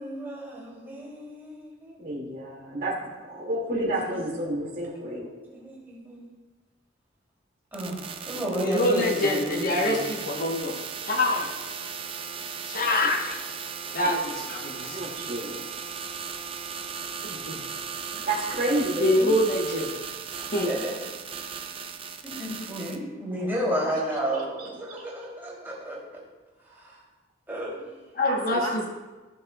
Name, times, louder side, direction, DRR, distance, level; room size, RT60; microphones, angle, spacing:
voice 1, 0.0-2.0 4.0-4.1 5.5-6.2 7.7-10.2 20.4-20.9 22.2-26.2 26.7-27.0 27.5-27.9, equal, 10° right, -6 dB, 2.8 m, -32 dB
voice 2, 2.0-5.3 14.4-15.6 18.2-19.3 23.9-24.0 24.3-24.7 28.2-28.9, right 1 dB, 45° right, -3 dB, 2.1 m, -30 dB
sound 1, 7.7-23.0, right 6 dB, 30° right, 0.5 m, -37 dB
voice 3, 8.6-10.8 11.0-11.6 12.7-13.4 13.9-15.0 17.2-17.6 19.0-19.9 20.5-20.7 28.1-28.9, left 1 dB, 45° left, 1 dB, 1.0 m, -25 dB
15.5 x 6.5 x 2.3 m, 1.2 s
head